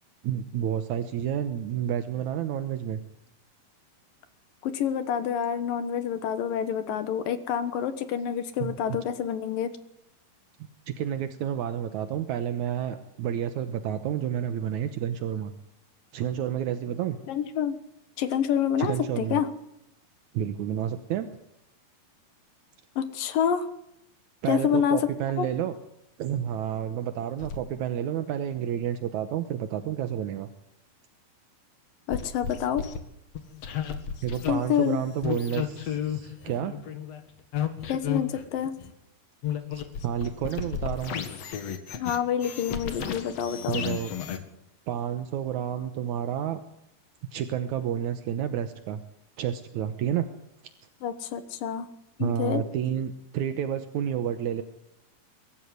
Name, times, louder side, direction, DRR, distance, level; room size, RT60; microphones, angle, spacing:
voice 1, 0.2-3.0 8.6-8.7 10.9-15.5 16.1-17.2 18.8-19.4 20.3-21.3 24.4-25.8 26.2-30.5 34.2-36.8 39.7-41.2 43.7-44.1 44.9-46.6 47.3-49.0 49.4-50.3 52.2-54.6, right 10 dB, 70° right, 9 dB, 1.8 m, -30 dB
voice 2, 4.6-9.7 17.3-17.8 18.2-19.5 23.0-23.7 24.5-25.0 25.4-25.5 32.1-32.8 34.5-35.0 35.3-35.4 37.9-38.7 42.0-43.8 51.0-51.9 52.2-52.6, left 8 dB, 65° left, 11 dB, 2.7 m, -27 dB
sound 1, 27.4-27.6 32.1-33.0 33.3-34.5 35.2-38.9 39.4-44.4, left 8 dB, 50° left, 2.3 m, -33 dB
23.5 x 13.5 x 9.5 m, 0.82 s
omnidirectional pair, 4.7 m